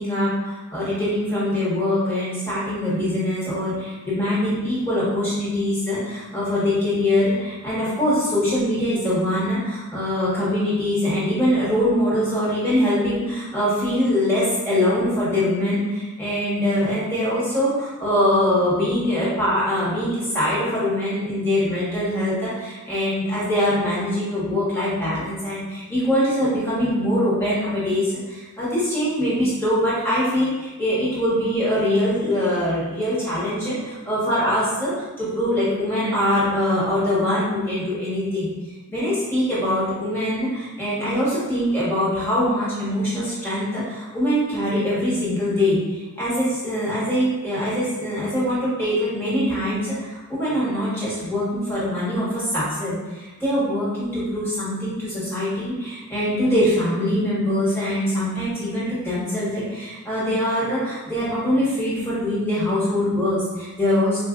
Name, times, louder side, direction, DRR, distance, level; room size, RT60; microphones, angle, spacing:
voice 1, 0.0-34.9 35.2-38.5 38.9-64.2, left 1 dB, 10° left, -10 dB, 1.0 m, -23 dB
3.9 x 2.5 x 2.4 m, 1.2 s
head